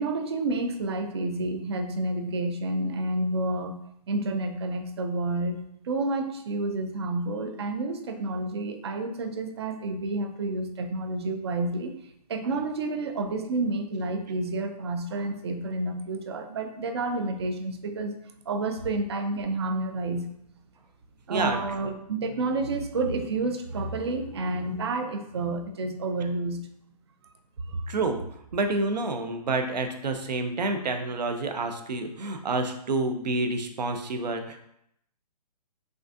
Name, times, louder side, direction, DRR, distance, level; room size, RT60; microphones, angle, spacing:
voice 1, 0.0-3.8 4.1-11.9 12.3-18.2 18.5-20.3 21.3-26.7 27.2-27.3 27.7-27.9, right 2 dB, 40° right, 7 dB, 0.4 m, -30 dB
voice 2, 27.9-28.2 28.5-34.7, right 3 dB, 80° right, 6 dB, 0.7 m, -28 dB
5.7 x 2.5 x 2.6 m, 0.76 s
hypercardioid pair, 165°, 21 cm